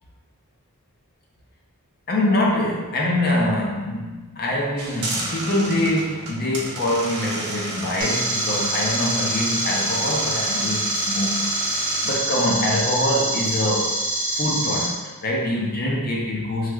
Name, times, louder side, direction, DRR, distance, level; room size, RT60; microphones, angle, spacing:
voice 1, 2.1-11.5 12.0-14.0 14.3-16.7, left 1 dB, 45° left, -3 dB, 0.5 m, -24 dB
sound 1, 4.8-12.1, right 2 dB, 85° right, 0.6 m, -32 dB
sound 2, 8.0-14.8, right 1 dB, 40° right, 0.6 m, -25 dB
3.1 x 2.8 x 2.3 m, 1.2 s
head